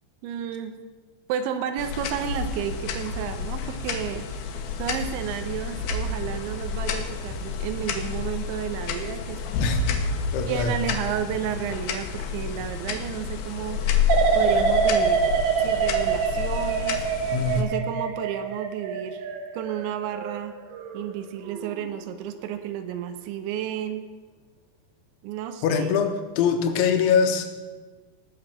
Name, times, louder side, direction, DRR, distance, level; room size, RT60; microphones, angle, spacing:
voice 1, 0.2-0.8 1.3-4.4 4.8-9.4 10.5-13.9 14.3-15.3 15.6-17.0 17.5-19.2 19.5-20.6 20.9-24.1 25.2-26.0, right 9 dB, 90° right, 8 dB, 3.2 m, -32 dB
sound 1, 1.8-17.6, left 6 dB, 65° left, 2.6 m, -29 dB
voice 2, 10.3-10.8 17.3-17.6 25.6-27.5, left 6 dB, 85° left, 6 dB, 3.6 m, -23 dB
sound 2, 14.1-21.0 21.4-21.9, right 6 dB, 65° right, 2.9 m, -25 dB
19.0 x 6.9 x 7.3 m, 1.4 s
omnidirectional pair, 5.2 m